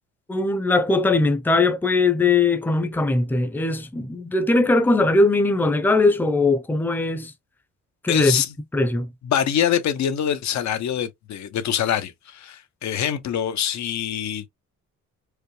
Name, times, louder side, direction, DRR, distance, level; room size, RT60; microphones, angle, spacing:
voice 1, 0.3-7.3 8.0-8.4 8.7-9.1, left 3 dB, 5° left, 0.6 m, -20 dB
voice 2, 8.1-8.5 9.2-14.5, left 9 dB, 65° left, 0.9 m, -24 dB
4.9 x 2.2 x 3.1 m
cardioid pair, 90°, 30 cm